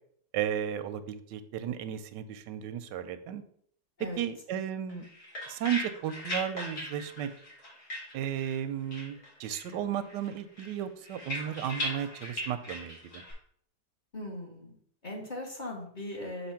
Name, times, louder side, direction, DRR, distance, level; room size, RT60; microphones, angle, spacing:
voice 1, 0.3-3.4 4.2-5.1 5.5-7.3 8.1-13.2, right 9 dB, 90° right, 11 dB, 1.2 m, -34 dB
sound 1, 4.9-8.6 8.9-9.8 10.1-13.3, left 1 dB, 60° left, 2.3 m, -39 dB
voice 2, 14.1-14.8 15.0-16.5, left 1 dB, 30° left, -3 dB, 1.3 m, -39 dB
6.8 x 2.8 x 5.7 m, 0.64 s
omnidirectional pair, 1.8 m